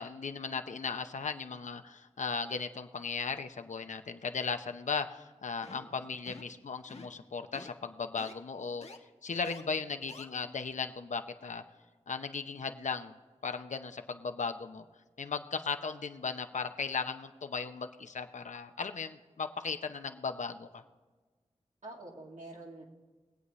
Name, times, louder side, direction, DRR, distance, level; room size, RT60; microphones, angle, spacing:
voice 1, 0.0-8.9 9.2-11.6 12.1-13.1 13.4-14.8 15.2-20.8, left 5 dB, 80° left, 8 dB, 0.7 m, -37 dB
sound 1, 5.6-5.9 6.3-6.5 6.9-7.2 7.5-7.7 8.2-8.3 8.8-9.0 9.4-9.6 10.1-10.2, left 3 dB, 55° left, 1.3 m, -48 dB
voice 2, 5.6-6.0 21.8-22.8, right 2 dB, 80° right, -2 dB, 2.4 m, -47 dB
22.5 x 8.2 x 3.2 m, 1.4 s
wide cardioid pair, 65°, 12 cm